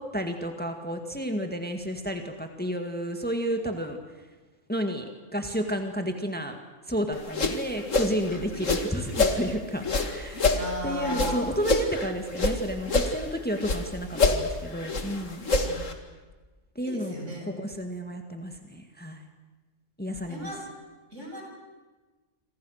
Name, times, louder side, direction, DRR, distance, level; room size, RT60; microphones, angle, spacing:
voice 1, 0.0-4.0 4.7-5.1 5.3-6.6 6.9-15.4 16.8-17.2 17.5-19.3 20.0-20.6, equal, 5° left, 5 dB, 1.9 m, -31 dB
sound 1, 7.1-9.4 9.8-12.6 12.8-13.8 14.1-15.9, left 3 dB, 90° left, 2.5 m, -26 dB
voice 2, 10.5-11.4 15.6-15.9 16.8-17.5 20.3-20.6 21.1-21.4, equal, 75° right, 0 dB, 7.4 m, -35 dB
28.0 x 26.0 x 6.5 m, 1.2 s
omnidirectional pair, 1.3 m